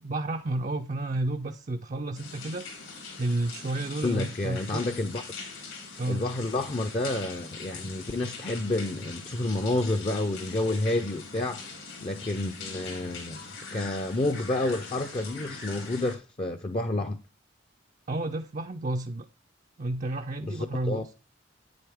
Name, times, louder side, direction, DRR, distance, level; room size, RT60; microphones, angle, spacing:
voice 1, 0.0-4.8 6.0-6.3 18.1-19.3 19.8-21.1, right 2 dB, 40° right, 0.4 m, -31 dB
sound 1, 2.1-16.2, left 4 dB, 85° left, 3.6 m, -42 dB
voice 2, 4.0-5.2 6.1-11.6 12.0-13.4 13.7-17.2 20.4-21.0, left 2 dB, 30° left, 0.5 m, -29 dB
9.1 x 7.8 x 3.5 m
head